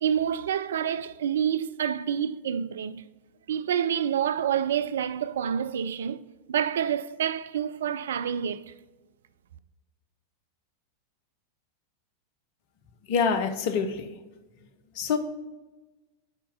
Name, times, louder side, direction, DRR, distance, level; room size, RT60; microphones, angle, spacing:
voice 1, 0.0-3.0 3.5-6.2 6.5-8.6, right 9 dB, 65° right, 0.3 m, -28 dB
voice 2, 13.1-14.1 15.0-15.2, left 6 dB, 45° left, 0.8 m, -25 dB
7.3 x 4.3 x 5.5 m
figure-of-eight pair, 90°, 0 cm